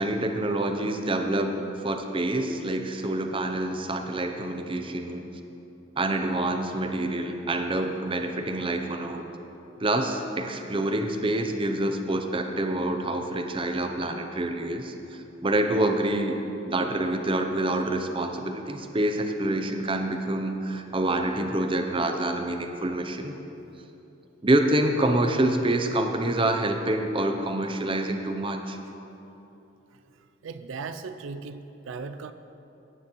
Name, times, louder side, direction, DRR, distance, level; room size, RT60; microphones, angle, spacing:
voice 1, 0.0-5.3 6.0-9.3 9.8-16.4 16.6-23.3 24.4-28.8, right 1 dB, 25° right, 5 dB, 0.6 m, -27 dB
voice 2, 30.4-32.3, right 4 dB, 75° right, 10 dB, 0.4 m, -37 dB
17.5 x 9.1 x 3.1 m, 3.0 s
head